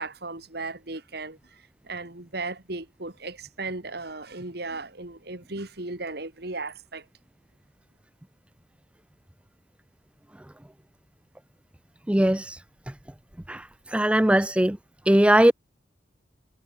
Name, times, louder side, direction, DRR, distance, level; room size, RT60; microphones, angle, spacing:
voice 1, 0.0-7.0, right 3 dB, 60° right, 2.9 m, -36 dB
voice 2, 12.1-12.6 13.5-14.8 15.1-15.5, right 1 dB, 5° right, 0.5 m, -20 dB
head